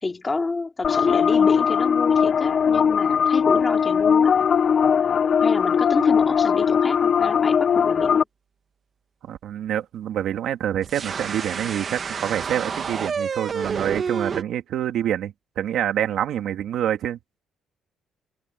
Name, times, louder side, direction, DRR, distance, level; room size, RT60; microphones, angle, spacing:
voice 1, 0.0-4.4 5.4-8.2, left 3 dB, 15° left, 3.1 m, -28 dB
sound 1, 0.8-8.2, left 7 dB, 35° left, 0.6 m, -19 dB
voice 2, 9.2-17.2, right 10 dB, 60° right, 2.9 m, -27 dB
sound 2, 10.8-14.4, right 6 dB, 30° right, 1.6 m, -29 dB
cardioid pair, 165°, 0 cm